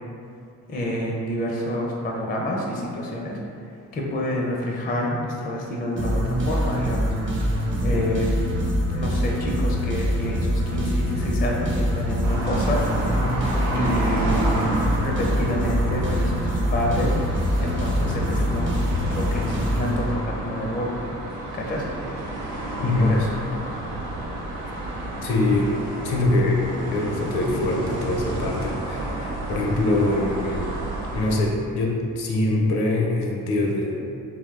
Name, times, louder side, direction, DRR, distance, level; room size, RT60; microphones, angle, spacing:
voice 1, 0.7-3.4 3.9-7.5 7.8-8.3 8.9-13.1 13.7-14.4 15.0-18.9 19.1-20.9 21.5-21.9 23.0-23.3, equal, 25° left, -2 dB, 0.4 m, -28 dB
sound 1, 6.0-20.5, equal, 30° right, 0.6 m, -24 dB
sound 2, 12.2-31.4, right 1 dB, 80° right, 0.5 m, -30 dB
voice 2, 22.8-23.2 25.2-25.7 26.0-26.6 26.9-30.7 31.1-34.1, left 2 dB, 70° left, -1 dB, 0.5 m, -23 dB
2.8 x 2.0 x 2.4 m, 2.4 s
supercardioid pair, 50°, 39 cm